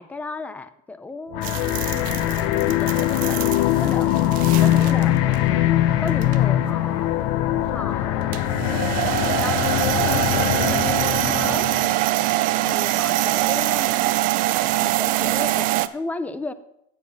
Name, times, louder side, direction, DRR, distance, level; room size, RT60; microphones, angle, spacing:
voice 1, 0.0-7.2 7.7-12.1 12.5-14.1 14.8-16.5, left 3 dB, 10° left, 14 dB, 0.4 m, -35 dB
sound 1, 1.3-12.0, left 13 dB, 85° left, 0.8 m, -22 dB
sound 2, 1.4-5.0 5.3-5.5 6.1-6.5 8.3-15.9, right 16 dB, 50° right, 0.5 m, -23 dB
10.0 x 7.5 x 6.1 m, 0.80 s
cardioid pair, 170°, 18 cm